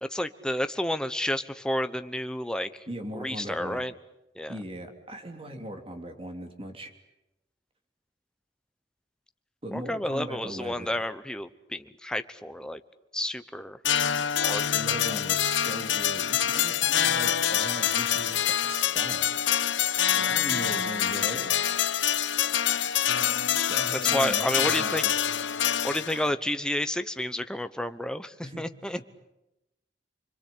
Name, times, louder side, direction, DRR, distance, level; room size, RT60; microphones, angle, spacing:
voice 1, 0.0-2.7 3.1-3.9 4.4-4.6 9.7-12.8 13.1-13.8 14.4-14.7 14.9-15.2 23.9-25.0 25.8-29.0, left 1 dB, 5° left, 10 dB, 1.0 m, -30 dB
voice 2, 2.9-3.8 4.5-6.9 9.6-10.9 14.7-19.4 20.2-21.5 23.7-25.3 25.6-26.0 28.4-29.0, right 1 dB, 30° right, 5 dB, 3.2 m, -39 dB
sound 1, 13.8-26.3, left 9 dB, 80° left, 0.9 m, -26 dB
29.0 x 22.5 x 8.6 m, 0.91 s
head